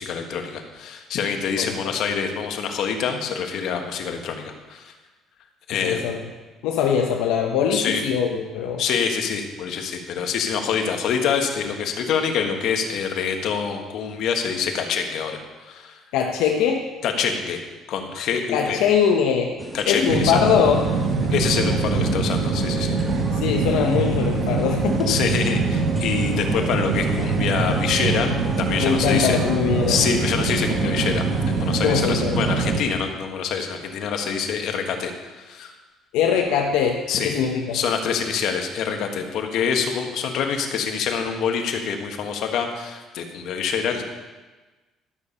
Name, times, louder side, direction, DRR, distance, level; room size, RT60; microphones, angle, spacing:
voice 1, 0.0-4.9 5.7-6.1 7.7-8.0 8.8-16.0 17.0-17.6 17.9-18.8 19.7-20.4 21.3-23.0 25.1-29.4 29.9-35.7 37.1-37.3 37.7-44.0, left 6 dB, 65° left, 4 dB, 1.4 m, -26 dB
voice 2, 5.8-6.2 6.6-8.8 16.1-16.9 18.5-19.5 19.9-20.9 23.3-25.2 28.8-30.0 31.8-32.4 36.1-37.0 37.2-37.8, left 7 dB, 90° left, 2 dB, 1.0 m, -22 dB
sound 1, 19.6-32.7, right 1 dB, 15° right, 1.5 m, -36 dB
sound 2, 20.1-32.8, right 4 dB, 70° right, 1.6 m, -24 dB
12.5 x 6.9 x 5.5 m, 1.2 s
cardioid pair, 115°, 0 cm